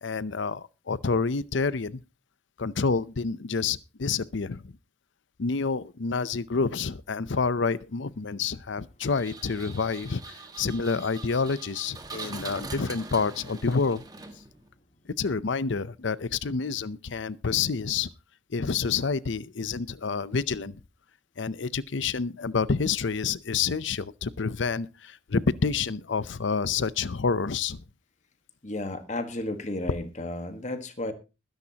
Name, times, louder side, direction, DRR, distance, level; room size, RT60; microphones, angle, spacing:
voice 1, 0.0-2.0 2.6-4.7 5.4-14.0 15.2-18.1 18.5-20.8 21.4-27.8, left 5 dB, 70° left, 0.6 m, -28 dB
Engine, 9.0-14.7, right 3 dB, 20° right, 1.6 m, -42 dB
voice 2, 28.6-31.1, left 2 dB, 35° left, 1.4 m, -33 dB
21.0 x 10.5 x 2.9 m
head